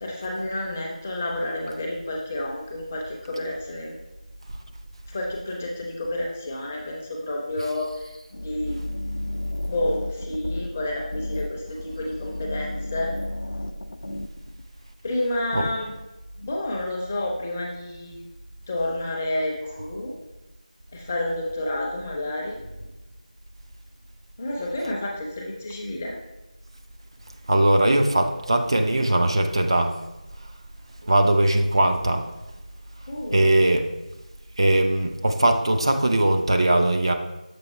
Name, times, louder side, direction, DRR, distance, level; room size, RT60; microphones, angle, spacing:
voice 1, 0.0-3.9 5.1-8.8 9.6-13.1 15.0-15.9 16.4-18.2 18.7-20.1 20.9-22.6 24.4-26.2 33.1-33.4, left 1 dB, 15° left, -1 dB, 0.6 m, -30 dB
sound 1, 8.3-14.7, left 1 dB, 80° left, 0.5 m, -33 dB
voice 2, 27.5-30.0 30.4-30.5 31.0-32.3 33.3-33.9 34.6-37.1, right 1 dB, 40° right, 4 dB, 0.4 m, -20 dB
6.8 x 3.9 x 4.4 m, 1.0 s
figure-of-eight pair, 170°, 4 cm